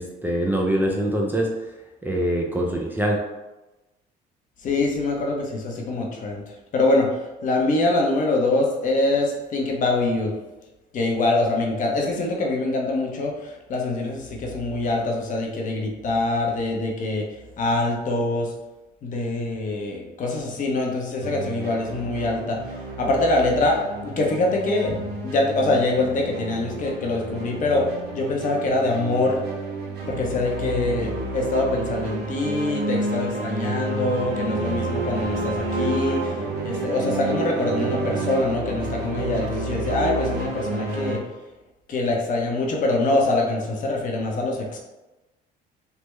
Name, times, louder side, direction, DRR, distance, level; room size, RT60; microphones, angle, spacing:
voice 1, 0.0-1.5 2.0-3.2, right 1 dB, 10° right, -1 dB, 0.4 m, -23 dB
voice 2, 4.6-6.4 6.7-10.3 10.9-17.3 17.6-18.5 19.0-22.6 23.0-29.4 30.0-36.4 36.6-41.2 41.9-44.8, left 2 dB, 50° left, 0 dB, 0.7 m, -24 dB
sound 1, 21.2-41.2, right 2 dB, 70° right, 0.6 m, -30 dB
3.4 x 2.0 x 3.1 m, 1.1 s
cardioid pair, 110°, 17 cm